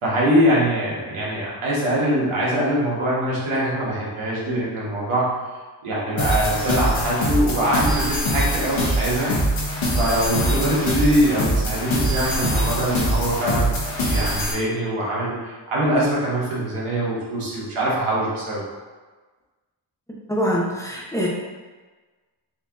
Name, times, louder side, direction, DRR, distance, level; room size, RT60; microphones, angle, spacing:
voice 1, 0.0-5.3 5.8-9.3 9.9-13.8 14.0-18.6, right 1 dB, 85° right, -6 dB, 1.5 m, -23 dB
sound 1, 6.2-14.5, equal, 65° left, 1.2 m, -23 dB
voice 2, 20.3-21.3, equal, 5° left, -4 dB, 0.8 m, -23 dB
4.5 x 2.8 x 3.6 m, 1.3 s
wide cardioid pair, 95°, 48 cm